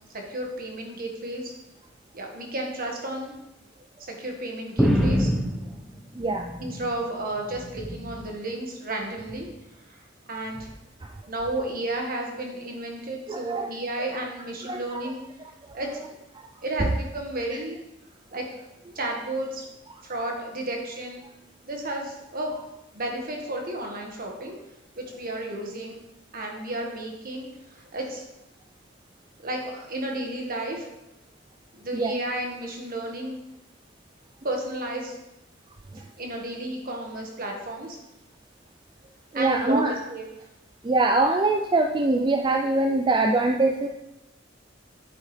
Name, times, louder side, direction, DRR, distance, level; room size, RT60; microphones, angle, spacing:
voice 1, 0.1-1.5 2.1-3.3 4.1-5.3 6.6-9.5 9.9-10.0 10.3-10.7 11.3-15.2 15.7-16.1 16.6-17.8 18.3-18.6 18.9-19.6 20.0-21.2 21.6-22.6 22.9-24.5 24.9-26.0 26.3-28.2 29.4-30.9 31.7-33.4 34.4-35.2 36.2-38.0 39.3-39.8 40.1-40.2, right 1 dB, 50° right, 1 dB, 1.7 m, -32 dB
sound 1, 4.8-7.0 7.4-8.3 9.2-9.6 10.6-10.7, equal, ahead, 0.9 m, -26 dB
voice 2, 6.2-6.5 13.3-13.7 14.7-14.8 15.7-15.8 16.4-16.5 16.8-16.9 31.9-32.1 39.3-39.9 40.8-43.9, right 2 dB, 25° right, 4 dB, 0.4 m, -23 dB
9.4 x 8.3 x 3.3 m, 0.93 s
head